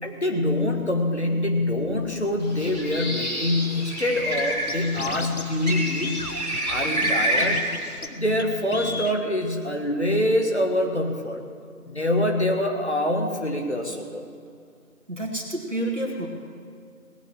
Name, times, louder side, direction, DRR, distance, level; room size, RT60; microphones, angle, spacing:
voice 1, 0.0-6.3 6.7-7.7 8.1-11.4 11.8-14.3, left 1 dB, 45° left, 3 dB, 1.7 m, -25 dB
Bird, 2.4-8.0, right 1 dB, 30° right, 2.9 m, -28 dB
Scratching (performance technique), 4.4-4.5 4.7-5.4 5.7-5.8 6.0-7.1 7.4-7.8 8.0-8.1 8.4-8.5 8.7-9.2, left 3 dB, 70° left, 1.0 m, -33 dB
voice 2, 15.1-16.3, right 1 dB, 55° right, 0 dB, 2.2 m, -29 dB
19.0 x 7.1 x 7.6 m, 2.2 s
figure-of-eight pair, 175°, 45 cm